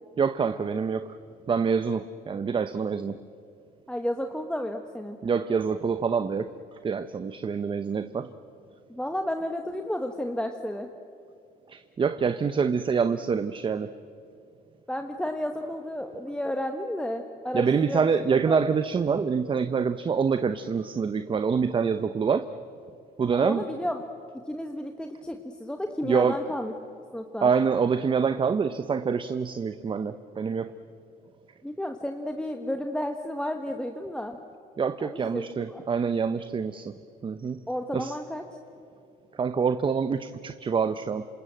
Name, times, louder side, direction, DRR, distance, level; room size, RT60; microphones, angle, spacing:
voice 1, 0.2-1.2 1.5-3.2 5.2-6.5 6.8-8.3 11.7-13.9 17.5-22.4 23.2-23.6 26.0-26.4 27.4-30.7 34.8-36.9 37.2-37.6 37.9-38.2 39.4-41.3, right 6 dB, 30° right, 11 dB, 0.8 m, -26 dB
voice 2, 3.9-5.2 8.9-10.9 14.9-18.1 18.5-18.6 23.3-24.1 24.5-26.7 27.1-27.5 31.6-34.4 35.0-35.8 37.7-38.4, left 1 dB, 5° left, 4 dB, 1.4 m, -32 dB
27.0 x 26.5 x 7.7 m, 2.5 s
cardioid pair, 110°, 17 cm